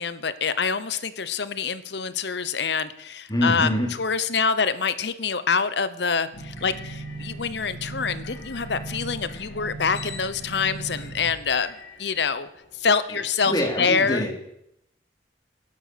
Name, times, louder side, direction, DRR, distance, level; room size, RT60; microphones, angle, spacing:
voice 1, 0.0-3.7 4.0-12.5 12.8-14.2, left 5 dB, 70° left, 14 dB, 0.9 m, -26 dB
voice 2, 3.3-3.9 13.1-14.3, left 1 dB, 25° left, 1 dB, 3.0 m, -25 dB
sound 1, 6.3-12.9, right 2 dB, 90° left, 3.6 m, -38 dB
15.5 x 10.5 x 6.8 m, 0.80 s
head